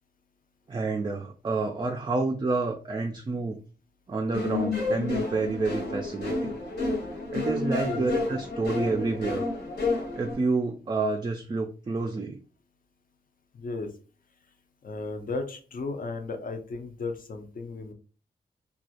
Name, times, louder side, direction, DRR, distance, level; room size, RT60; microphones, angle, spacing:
voice 1, 0.7-3.6 4.1-6.6 7.3-9.4 10.1-12.4, right 3 dB, 25° right, 3 dB, 0.3 m, -29 dB
sound 1, 4.3-10.3, left 3 dB, 65° left, 1.0 m, -30 dB
voice 2, 13.5-13.9 14.8-17.9, left 3 dB, 50° left, 6 dB, 0.5 m, -34 dB
2.3 x 2.0 x 2.7 m, 0.37 s
cardioid pair, 45°, 18 cm